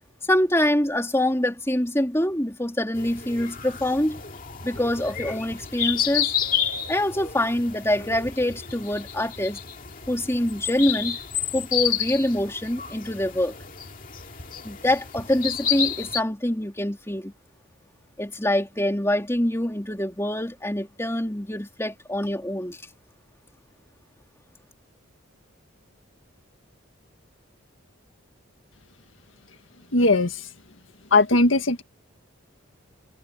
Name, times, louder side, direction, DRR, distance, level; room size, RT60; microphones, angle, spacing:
voice 1, 0.3-4.2 4.6-6.3 6.9-9.6 10.1-11.2 11.5-13.5 14.6-17.3 18.2-22.8, left 1 dB, 15° left, 3.3 m, -25 dB
sound 1, 2.9-16.2, left 8 dB, 40° left, 2.3 m, -30 dB
voice 2, 29.9-30.3 31.1-31.8, left 2 dB, 70° left, 1.9 m, -18 dB
head